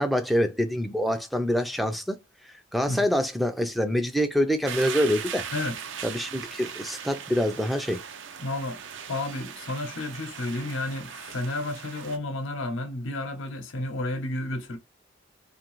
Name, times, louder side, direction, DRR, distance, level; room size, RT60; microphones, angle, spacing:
voice 1, 0.0-2.2 2.4-5.5 6.0-8.0, equal, ahead, 0.3 m, -26 dB
sound 1, 4.7-12.2, right 7 dB, 75° right, 0.5 m, -39 dB
voice 2, 8.4-8.8 9.1-14.8, left 2 dB, 85° left, 0.7 m, -31 dB
2.6 x 2.5 x 2.9 m
head